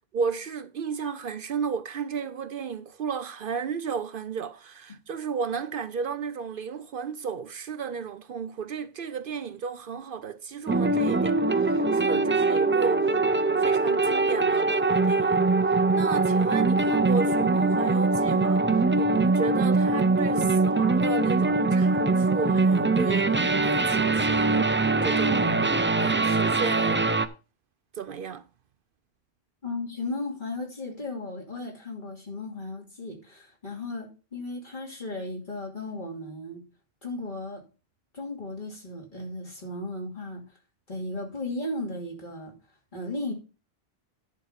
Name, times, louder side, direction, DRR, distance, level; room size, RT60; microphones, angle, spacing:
voice 1, 0.1-15.4 15.6-27.0 27.9-28.5, right 6 dB, 65° right, 0.8 m, -34 dB
sound 1, 10.7-27.3, right 3 dB, 20° right, 0.3 m, -22 dB
voice 2, 29.6-36.6 37.0-37.6 38.1-40.4 40.9-42.5 42.9-43.3, left 2 dB, 50° left, 3.0 m, -35 dB
10.5 x 5.1 x 5.8 m
omnidirectional pair, 1.0 m